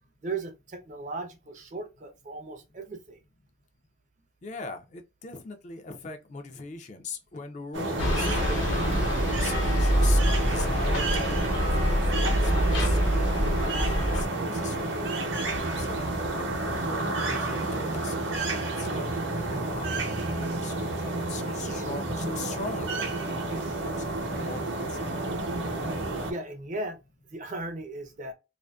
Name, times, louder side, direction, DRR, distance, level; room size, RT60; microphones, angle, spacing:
voice 1, 0.2-3.2 26.3-27.0 27.3-28.3, right 2 dB, 40° right, 0.5 m, -36 dB
voice 2, 4.4-13.0 13.2-13.5 13.9-15.0 15.7-19.0 19.3-22.9 23.5-25.1, left 3 dB, 35° left, 0.3 m, -40 dB
sound 1, 7.7-26.3, right 2 dB, 70° right, 0.7 m, -30 dB
sound 2, 8.0-14.3, equal, 75° left, 0.9 m, -25 dB
2.5 x 2.4 x 2.2 m
head